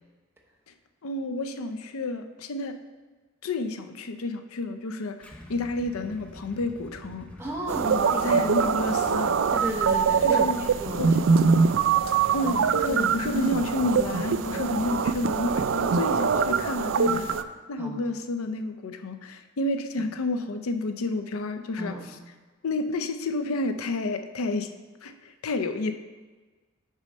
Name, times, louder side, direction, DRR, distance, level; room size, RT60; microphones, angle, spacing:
voice 1, 1.0-2.8 3.4-7.3 7.9-9.3 10.2-10.6 11.0-11.1 12.3-17.3 17.7-22.2 22.6-24.7 25.0-25.9, left 2 dB, 85° left, 8 dB, 0.6 m, -30 dB
Motorcycle / Engine starting / Idling, 5.2-16.6, left 1 dB, 5° left, 0.6 m, -46 dB
voice 2, 7.4-8.5 9.5-10.5 10.8-11.8 12.4-12.5 12.9-13.1 14.5-14.8 17.8-18.0 20.0-20.1 21.8-22.2, equal, 10° right, -1 dB, 0.9 m, -34 dB
sound 1, 7.7-17.4, right 6 dB, 65° right, 0.4 m, -23 dB
6.2 x 5.4 x 5.3 m, 1.3 s
head